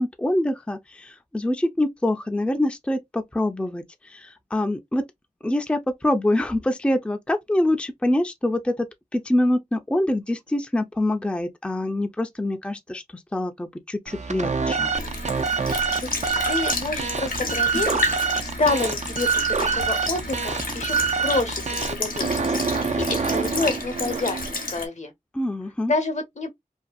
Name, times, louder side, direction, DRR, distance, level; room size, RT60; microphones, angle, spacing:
voice 1, 0.0-5.0 5.4-8.9 9.1-13.0 13.3-14.9 25.3-25.9, left 1 dB, 10° left, 0.4 m, -25 dB
sound 1, 14.1-24.6, right 5 dB, 55° right, 0.4 m, -26 dB
Sink (filling or washing) / Liquid, 14.9-24.9, left 3 dB, 90° left, 0.7 m, -31 dB
voice 2, 16.0-18.0 18.4-24.4 24.7-25.1 25.9-26.5, left 3 dB, 55° left, 0.7 m, -28 dB
2.5 x 2.3 x 2.2 m
wide cardioid pair, 50°, 14 cm